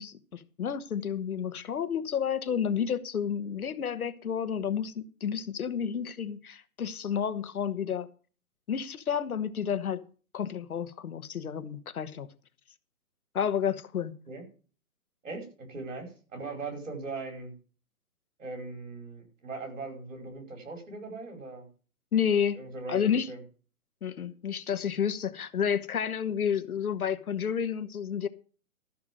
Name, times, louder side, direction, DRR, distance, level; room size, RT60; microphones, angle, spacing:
voice 1, 0.0-8.1 8.7-10.0 10.3-12.3 13.3-14.1 22.1-22.6 22.9-23.3 24.0-28.3, left 8 dB, 75° left, 1.4 m, -30 dB
voice 2, 15.2-17.5 18.4-21.7 22.5-23.4, right 3 dB, 60° right, 5.0 m, -40 dB
13.0 x 6.0 x 7.6 m
hypercardioid pair, 175°, 44 cm